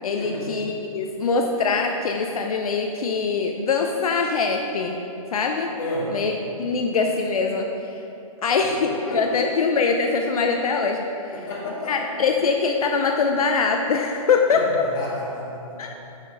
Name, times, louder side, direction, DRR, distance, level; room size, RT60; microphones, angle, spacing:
voice 1, 0.0-5.0 5.3-5.7 6.1-6.3 6.6-7.7 8.4-11.1 11.9-14.8 15.8-15.9, left 4 dB, 80° left, 3 dB, 0.6 m, -23 dB
voice 2, 5.8-6.1 6.7-6.8 8.9-9.6 11.3-12.2 14.5-15.9, left 1 dB, 35° left, -6 dB, 1.8 m, -32 dB
6.0 x 5.8 x 5.4 m, 2.8 s
hypercardioid pair, 170°, 18 cm